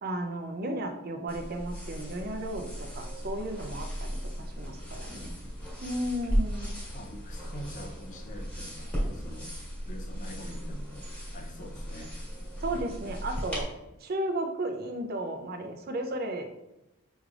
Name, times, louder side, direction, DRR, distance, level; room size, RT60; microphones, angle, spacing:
voice 1, 0.0-5.3 5.8-6.7 12.6-13.7 14.0-16.5, right 1 dB, 45° right, 5 dB, 0.5 m, -34 dB
sound 1, 1.3-13.6, equal, 5° left, 1.5 m, -36 dB
voice 2, 5.1-5.4 6.9-9.5 9.9-11.0 11.3-12.1, equal, 35° left, 3 dB, 0.7 m, -45 dB
6.2 x 3.2 x 2.4 m, 0.94 s
head